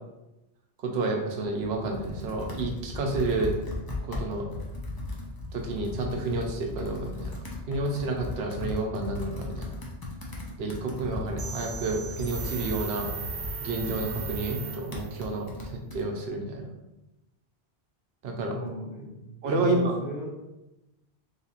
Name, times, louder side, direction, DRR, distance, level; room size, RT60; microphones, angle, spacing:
voice 1, 0.8-3.5 4.1-4.5 5.5-7.3 7.7-9.8 10.6-13.1 13.6-16.7 18.2-18.6 19.4-19.9, right 2 dB, 75° right, 2 dB, 0.9 m, -30 dB
Computer keyboard, 1.4-16.0, left 2 dB, 30° left, 0.4 m, -37 dB
sound 1, 11.4-15.3, right 6 dB, 55° right, 0.5 m, -38 dB
voice 2, 18.5-19.3 19.5-20.4, equal, 90° left, -5 dB, 1.3 m, -36 dB
3.4 x 2.8 x 2.8 m, 0.98 s
omnidirectional pair, 1.1 m